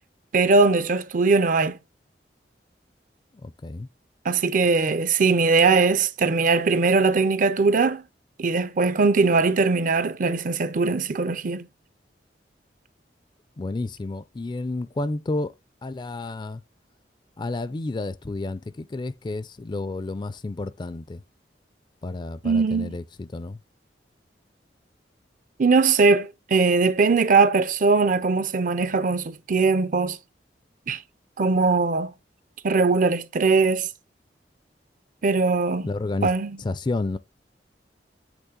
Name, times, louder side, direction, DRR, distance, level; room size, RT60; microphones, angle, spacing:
voice 1, 0.3-1.8 4.2-8.0 8.4-11.7 22.4-22.9 25.6-30.2 30.9-31.0 31.4-32.1 32.6-33.9 35.2-35.9 36.2-36.5, right 4 dB, 45° right, 0.5 m, -20 dB
voice 2, 3.4-3.9 13.6-15.5 15.8-16.6 17.4-21.2 22.0-23.6 35.8-37.2, left 2 dB, 25° left, 0.4 m, -31 dB
8.1 x 3.4 x 3.7 m
head